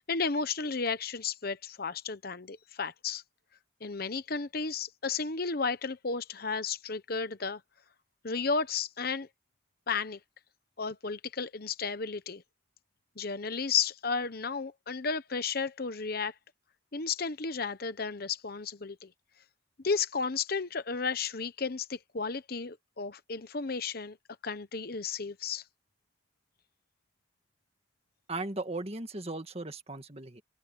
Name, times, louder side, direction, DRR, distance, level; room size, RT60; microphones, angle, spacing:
voice 1, 0.1-3.2 3.8-7.6 8.2-9.3 9.9-10.2 10.8-12.4 13.2-16.3 16.9-19.1 19.8-24.2 24.4-25.6, left 5 dB, 50° left, 1.0 m, -33 dB
voice 2, 28.3-30.4, right 2 dB, 30° right, 1.9 m, -37 dB
head